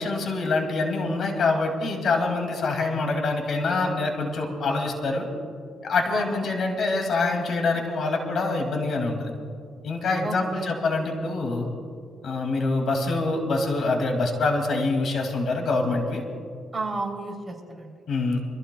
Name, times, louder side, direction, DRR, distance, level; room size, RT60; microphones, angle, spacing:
voice 1, 0.0-5.2 5.8-9.3 9.8-11.7 12.2-16.2 18.1-18.4, left 3 dB, 60° left, 3 dB, 2.4 m, -25 dB
voice 2, 6.1-6.5 10.2-10.7 16.7-17.9, right 3 dB, 20° right, -1 dB, 3.3 m, -32 dB
26.0 x 15.0 x 2.3 m, 2.3 s
cardioid pair, 90°, 0 cm